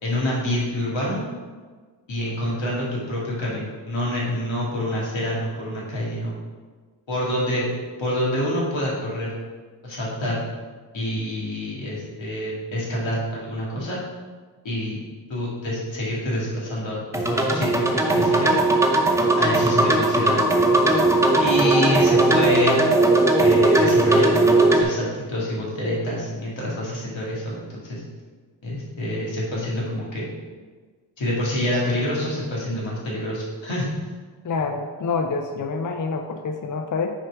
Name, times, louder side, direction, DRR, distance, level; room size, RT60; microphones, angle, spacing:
voice 1, 0.0-1.2 2.1-6.3 7.1-7.7 8.0-9.3 9.8-10.4 10.9-14.0 14.6-15.0 15.3-18.5 19.4-21.0 21.4-22.8 23.4-28.0 28.6-30.3 31.2-33.9, left 1 dB, 85° left, -5 dB, 2.2 m, -27 dB
sound 1, 17.1-24.8, right 2 dB, 5° right, 0.6 m, -18 dB
voice 2, 34.4-37.1, left 4 dB, 45° left, 5 dB, 0.5 m, -27 dB
6.4 x 4.6 x 4.7 m, 1.5 s
wide cardioid pair, 100°, 44 cm